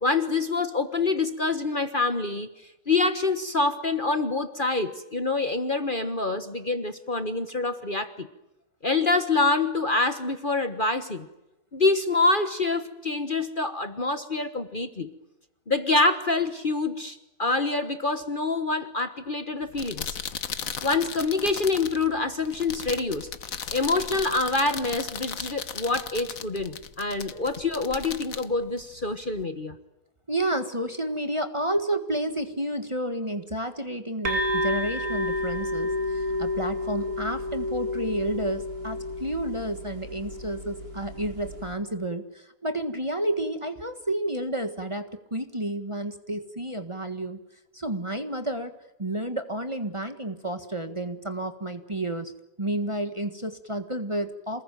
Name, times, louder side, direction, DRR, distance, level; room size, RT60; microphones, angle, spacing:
voice 1, 0.0-2.5 2.9-8.3 8.8-11.3 11.7-15.1 15.7-20.2 20.8-23.3 23.7-29.8, left 3 dB, 35° left, 10 dB, 1.5 m, -26 dB
sound 1, 19.6-29.4, left 7 dB, 60° left, 1.6 m, -37 dB
voice 2, 30.3-47.4 47.7-52.3 52.6-54.6, right 1 dB, 20° right, 7 dB, 1.6 m, -31 dB
sound 2, 34.2-41.7, left 1 dB, 65° right, 5.2 m, -30 dB
28.0 x 20.5 x 9.2 m, 0.93 s
omnidirectional pair, 1.7 m